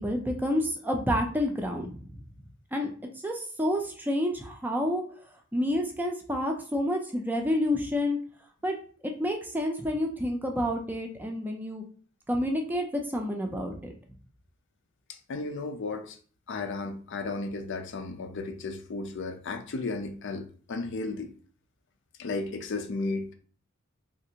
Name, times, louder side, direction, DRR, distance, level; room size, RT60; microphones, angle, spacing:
voice 1, 0.0-2.2 2.7-5.0 5.5-8.2 8.6-8.8 9.0-11.8 12.3-13.9, left 1 dB, 10° right, 0.4 m, -29 dB
voice 2, 15.1-16.2 16.5-21.3 22.2-23.3, left 3 dB, 60° left, 0.5 m, -34 dB
3.4 x 2.4 x 2.8 m
head